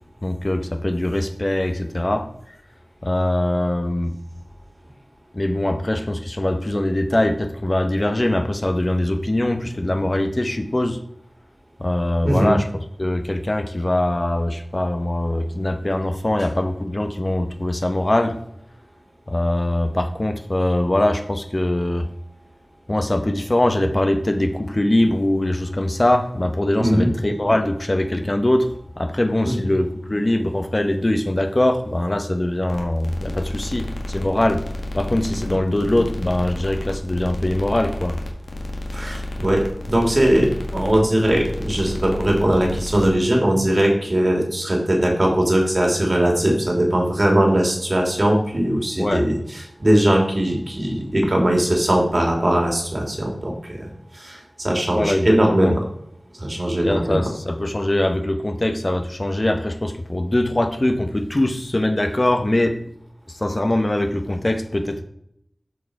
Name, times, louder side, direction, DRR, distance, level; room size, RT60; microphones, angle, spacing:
voice 1, 0.2-2.3 3.0-4.2 5.3-11.0 11.8-12.7 13.0-18.4 19.3-22.1 22.9-28.7 29.0-34.6 34.9-38.2 49.0-49.3 51.2-51.3 55.0-55.7 56.8-62.8 63.3-65.0, left 1 dB, 40° left, 7 dB, 0.9 m, -22 dB
voice 2, 12.2-12.5 26.8-27.1 29.4-29.6 35.5-35.6 38.9-49.4 49.8-53.8 54.1-55.8 56.4-57.3, right 1 dB, 50° right, 0 dB, 2.8 m, -20 dB
sound 1, 32.7-43.1, left 1 dB, 90° left, 1.6 m, -31 dB
12.5 x 4.8 x 4.8 m, 0.71 s
wide cardioid pair, 55°, 0 cm